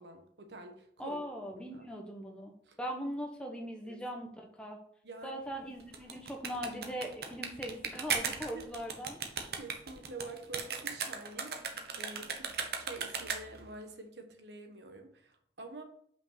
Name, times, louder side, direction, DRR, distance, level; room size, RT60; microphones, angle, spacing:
voice 1, 0.0-1.2 1.7-1.9 2.6-2.8 3.8-4.0 5.0-5.4 8.5-8.6 9.6-12.5 12.8-15.8, right 2 dB, 75° right, 5 dB, 1.2 m, -47 dB
voice 2, 1.0-2.5 2.8-4.8 5.2-9.2, equal, 5° left, 0 dB, 1.1 m, -40 dB
sound 1, 5.8-13.7, right 5 dB, 60° right, 1.0 m, -37 dB
5.7 x 5.1 x 5.8 m, 0.64 s
head